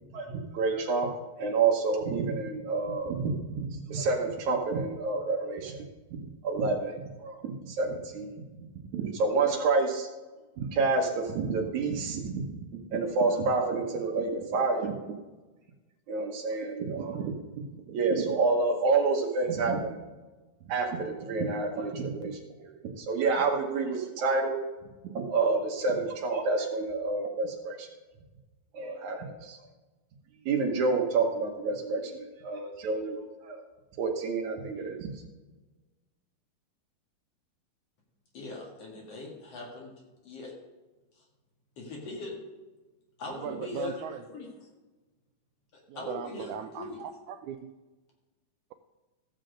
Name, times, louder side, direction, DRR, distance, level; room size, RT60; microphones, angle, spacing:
voice 1, 0.1-1.1 1.4-5.8 6.1-8.7 8.9-10.1 10.6-12.5 12.7-14.9 16.1-20.0 20.7-24.6 25.1-27.9 28.7-29.6 30.5-33.2 33.4-33.6 34.0-35.1, right 4 dB, 65° right, 2 dB, 2.3 m, -29 dB
voice 2, 38.3-39.9 40.2-40.5 41.8-42.4 43.2-44.5 46.0-47.0, left 3 dB, 50° left, -1 dB, 2.6 m, -40 dB
voice 3, 43.3-44.2 45.9-47.7, right 9 dB, 90° right, 7 dB, 1.7 m, -38 dB
15.0 x 7.4 x 3.9 m, 1.2 s
omnidirectional pair, 4.0 m